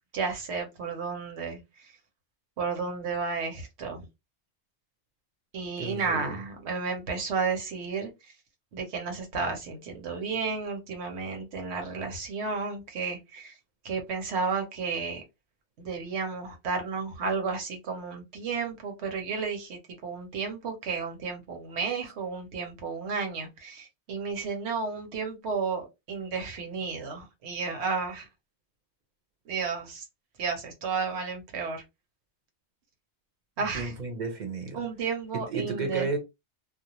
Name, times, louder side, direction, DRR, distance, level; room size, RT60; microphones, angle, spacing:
voice 1, 0.1-1.6 2.6-4.0 5.5-8.1 8.7-13.5 13.8-15.2 15.8-28.3 29.5-30.0 30.4-31.8 33.6-33.9 34.7-36.2, right 5 dB, 70° right, 1.1 m, -32 dB
voice 2, 5.8-6.4 33.6-34.8 35.3-36.2, right 4 dB, 45° right, 0.8 m, -33 dB
2.4 x 2.1 x 2.8 m
omnidirectional pair, 1.2 m